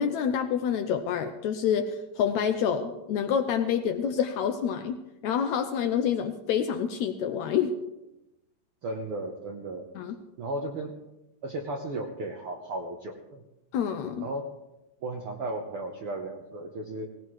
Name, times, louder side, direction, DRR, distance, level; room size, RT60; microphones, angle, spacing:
voice 1, 0.0-7.8 10.0-10.1 13.7-14.3, left 8 dB, 80° left, 7 dB, 1.7 m, -27 dB
voice 2, 8.8-9.9 10.4-11.0 11.4-13.4 14.2-14.5 15.0-17.1, right 2 dB, 80° right, 2 dB, 1.2 m, -35 dB
18.5 x 18.0 x 3.2 m, 0.99 s
omnidirectional pair, 3.9 m